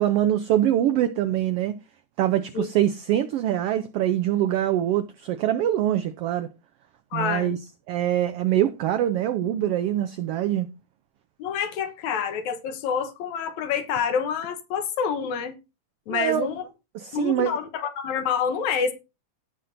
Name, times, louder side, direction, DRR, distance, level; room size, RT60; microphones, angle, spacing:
voice 1, 0.0-1.7 2.2-6.5 7.1-7.6 7.9-10.7 16.1-16.5 16.9-17.5, right 12 dB, 90° right, 1.3 m, -24 dB
voice 2, 7.1-7.5 11.4-15.6 16.1-16.6 17.1-18.9, left 7 dB, 80° left, 2.4 m, -27 dB
16.5 x 5.7 x 2.6 m
omnidirectional pair, 3.4 m